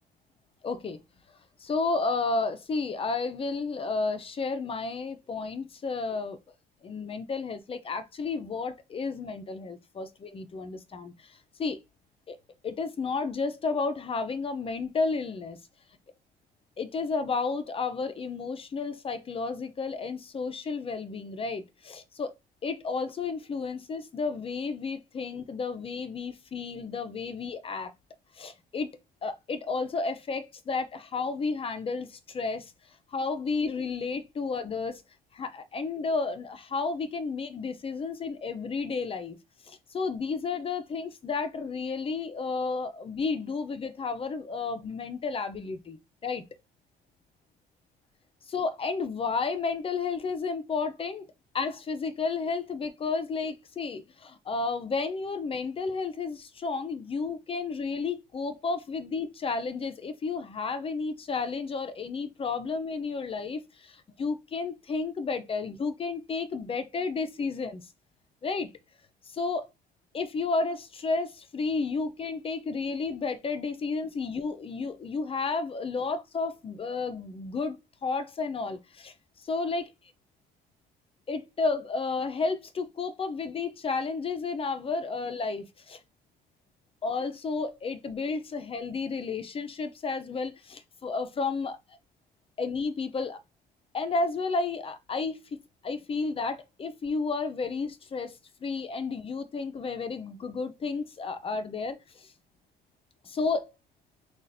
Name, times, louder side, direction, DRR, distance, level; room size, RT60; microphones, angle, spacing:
voice 1, 0.6-1.0 1.6-6.4 6.8-11.8 12.3-12.4 12.6-15.6 16.8-22.3 22.6-27.9 28.4-28.9 29.2-32.7 33.1-35.0 35.3-39.4 39.6-46.0 46.2-46.4 48.5-51.2 51.5-67.8 68.4-68.7 69.3-69.7 70.1-77.8 78.0-79.1 79.4-79.9 81.3-86.0 87.0-91.8 92.6-93.4 93.9-95.4 95.8-102.3 103.2-103.7, left 4 dB, 35° left, 0.7 m, -32 dB
6.2 x 2.5 x 2.7 m
cardioid pair, 110°, 17 cm